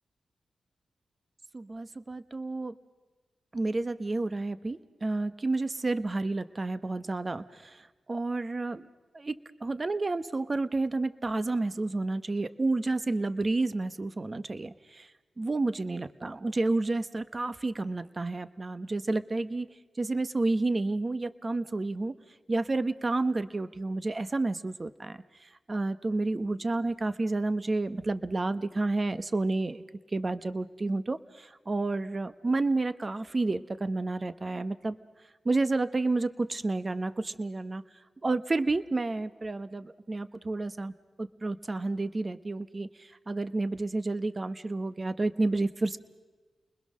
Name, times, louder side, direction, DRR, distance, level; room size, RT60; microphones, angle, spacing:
voice 1, 1.5-2.7 3.5-7.8 8.1-8.9 9.1-9.4 9.6-15.1 15.4-19.7 20.0-22.1 22.5-25.2 25.7-29.8 30.1-35.0 35.4-37.8 38.2-40.9 41.2-42.9 43.3-46.0, right 2 dB, 35° right, 13 dB, 1.0 m, -30 dB
30.0 x 21.0 x 6.5 m, 1.3 s
cardioid pair, 60°, 0 cm